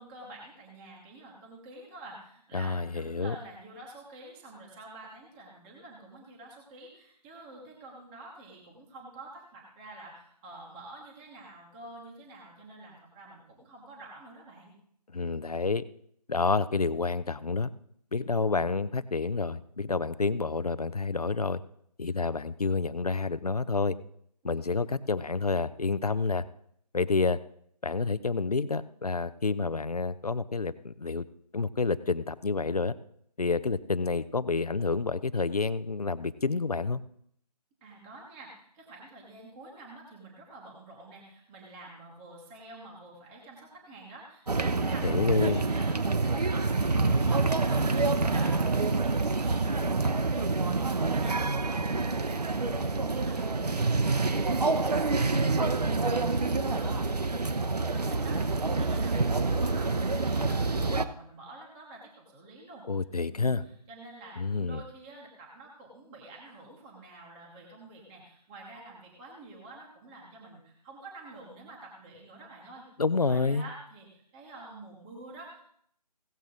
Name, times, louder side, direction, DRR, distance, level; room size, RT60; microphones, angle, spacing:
voice 1, 0.0-14.7 24.4-24.6 37.8-62.8 63.3-73.0 73.3-75.6, right 2 dB, 5° right, -3 dB, 0.9 m, -48 dB
voice 2, 2.5-3.3 15.1-15.8 16.3-17.7 18.1-21.6 22.0-24.0 24.4-26.4 26.9-27.4 27.8-31.3 31.5-32.9 33.4-37.0 45.0-45.6 62.9-63.6 64.4-64.8 73.0-73.7, left 4 dB, 65° left, 16 dB, 0.7 m, -29 dB
sound 1, 44.5-61.1, right 3 dB, 70° right, 0.8 m, -27 dB
16.5 x 7.3 x 3.8 m, 0.67 s
figure-of-eight pair, 160°, 21 cm